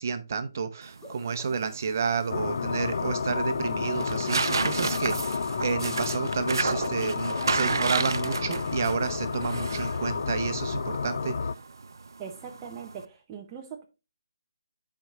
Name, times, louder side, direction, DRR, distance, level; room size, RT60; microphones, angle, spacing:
voice 1, 0.0-11.3, right 5 dB, 45° right, 0.8 m, -30 dB
sound 1, 0.8-1.8 3.6-4.5 6.6-7.7, left 2 dB, 15° left, 0.8 m, -48 dB
sound 2, 0.8-13.0, right 4 dB, 75° right, 0.5 m, -33 dB
sound 3, 2.3-11.5, left 5 dB, 55° left, 0.4 m, -31 dB
voice 2, 12.2-13.8, right 7 dB, 15° right, 0.6 m, -41 dB
13.5 x 4.6 x 2.3 m
hypercardioid pair, 170°, 2 cm